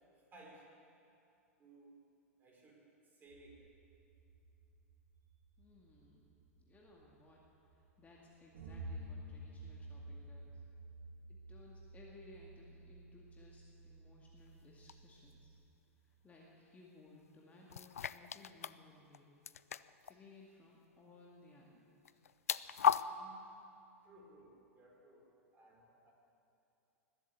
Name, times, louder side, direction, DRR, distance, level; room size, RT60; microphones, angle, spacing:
voice 1, 0.3-0.7 1.6-2.0 2.4-3.7 22.9-23.5 24.0-26.1, right 2 dB, 25° right, -2 dB, 4.7 m, -60 dB
sound 1, 3.3-6.1 7.0-7.1 8.5-15.7, right 1 dB, 65° right, 1.4 m, -51 dB
voice 2, 5.6-6.3 6.7-7.4 7.7-10.5 11.3-15.4 16.1-19.4 20.1-22.0, left 2 dB, 20° left, -3 dB, 2.1 m, -60 dB
sound 2, 14.9-15.0 17.7-18.8 19.1-19.2 19.5-20.1 22.0-23.0, left 8 dB, 75° left, 0.4 m, -34 dB
20.0 x 8.2 x 8.3 m, 2.7 s
figure-of-eight pair, 95°, 8 cm